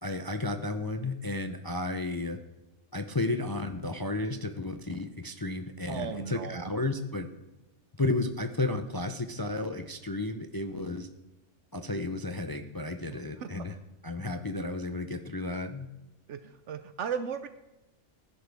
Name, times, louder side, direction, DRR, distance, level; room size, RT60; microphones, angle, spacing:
voice 1, 0.0-2.4 2.9-7.3 8.0-11.1 11.7-13.7 14.0-15.9, left 2 dB, 25° left, 7 dB, 0.5 m, -33 dB
voice 2, 5.9-6.9 13.1-13.7 16.3-17.5, right 7 dB, 70° right, 10 dB, 0.9 m, -37 dB
16.0 x 10.5 x 3.5 m, 0.99 s
omnidirectional pair, 1.3 m